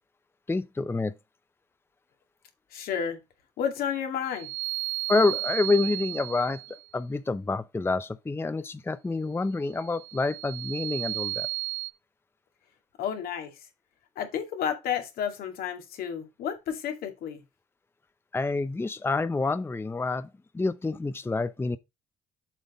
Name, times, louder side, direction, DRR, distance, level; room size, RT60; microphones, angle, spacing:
voice 1, 0.5-1.1 5.1-6.6 6.9-11.5 18.3-20.3 20.5-21.8, left 3 dB, 15° left, 0.6 m, -27 dB
voice 2, 2.7-3.2 3.6-4.5 13.0-13.6 14.2-17.4, left 8 dB, 70° left, 2.3 m, -31 dB
sound 1, 4.3-6.8 9.8-11.9, right 27 dB, 70° right, 0.7 m, -34 dB
7.5 x 5.2 x 4.1 m
hypercardioid pair, 60°, 16 cm